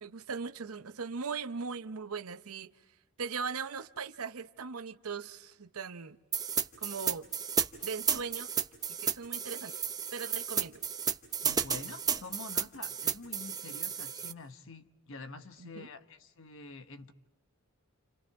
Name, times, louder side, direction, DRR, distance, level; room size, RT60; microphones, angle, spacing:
voice 1, 0.0-2.7 3.2-6.2 6.8-7.3 7.8-8.5 9.0-9.7 10.1-10.8 15.6-15.9, right 5 dB, 75° right, 12 dB, 0.7 m, -39 dB
sound 1, 6.3-14.3, right 7 dB, 15° right, 0.7 m, -32 dB
voice 2, 11.4-17.1, left 3 dB, 60° left, 9 dB, 1.1 m, -47 dB
29.5 x 28.5 x 4.7 m, 1.0 s
head